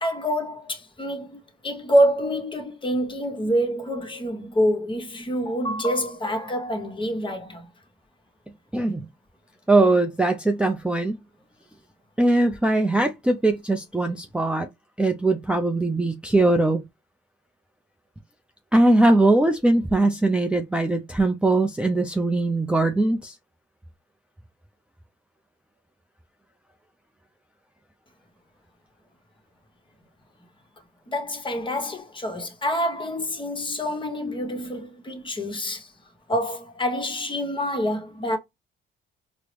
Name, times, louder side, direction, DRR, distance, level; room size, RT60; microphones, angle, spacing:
voice 1, 0.0-7.6 31.1-35.9 36.3-38.4, equal, 25° left, 0.9 m, -26 dB
voice 2, 8.7-9.0 9.7-11.2 12.2-14.7 15.0-16.8 18.7-23.3, right 2 dB, 5° right, 0.4 m, -21 dB
4.5 x 2.0 x 3.1 m
cardioid pair, 90°, 20 cm